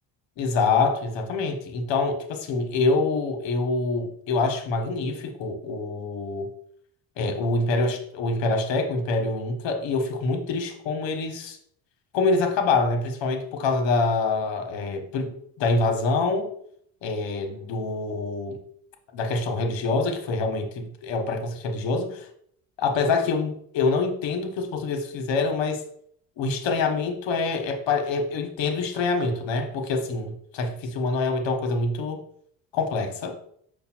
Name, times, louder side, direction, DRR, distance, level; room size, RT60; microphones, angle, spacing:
voice 1, 0.4-6.5 7.2-11.6 12.1-16.5 17.0-18.6 19.1-22.3 22.8-25.8 26.4-32.2 32.7-33.3, left 3 dB, 65° left, 4 dB, 1.1 m, -25 dB
5.2 x 2.2 x 4.4 m, 0.66 s
supercardioid pair, 80°, 48 cm